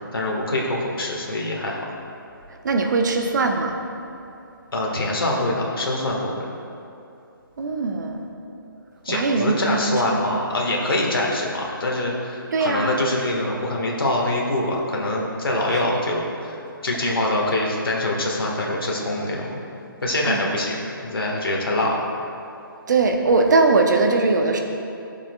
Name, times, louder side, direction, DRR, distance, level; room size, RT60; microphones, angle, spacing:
voice 1, 0.1-1.9 4.7-6.3 9.0-19.6 20.0-22.0, left 1 dB, 80° left, -2 dB, 1.5 m, -24 dB
voice 2, 2.6-3.8 7.6-8.3 9.1-10.0 12.5-13.0 20.2-20.5 22.9-24.6, right 3 dB, 55° right, 4 dB, 0.8 m, -20 dB
13.5 x 7.1 x 2.3 m, 2.7 s
hypercardioid pair, 155°, 12 cm